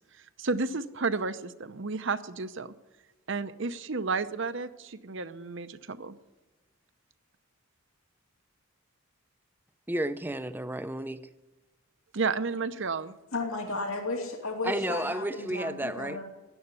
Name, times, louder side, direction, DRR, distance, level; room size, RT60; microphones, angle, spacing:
voice 1, 0.4-2.7 3.3-6.2 12.1-13.1, right 4 dB, 55° right, 0.8 m, -32 dB
voice 2, 9.9-11.3 14.6-16.2, right 1 dB, 10° right, 0.5 m, -32 dB
voice 3, 13.3-16.2, left 3 dB, 75° left, 2.6 m, -34 dB
16.0 x 11.0 x 8.2 m
head